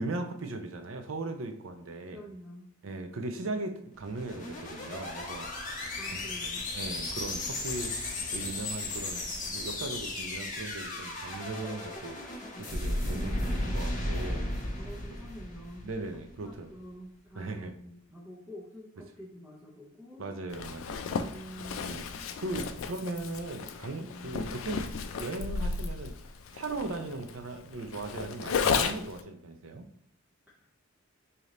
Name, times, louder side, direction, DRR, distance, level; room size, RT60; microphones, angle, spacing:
voice 1, 0.0-2.2 2.8-5.8 6.1-6.2 6.7-7.9 8.3-9.2 9.5-14.5 15.8-16.7 17.3-17.7 20.2-21.0 21.8-22.1 22.4-24.9 25.1-26.1 26.5-29.9, right 2 dB, 70° right, 6 dB, 0.5 m, -38 dB
voice 2, 2.1-2.7 6.0-6.7 13.1-13.9 14.7-15.8 16.3-20.2 21.1-21.9 22.2-22.8 23.9-24.5 30.5-30.6, equal, 10° right, -6 dB, 0.6 m, -47 dB
sound 1, 3.9-16.3, left 1 dB, 40° left, 0.8 m, -35 dB
Zipper (clothing), 20.5-29.2, left 5 dB, 75° left, 0.4 m, -34 dB
3.2 x 2.8 x 3.7 m, 0.70 s
head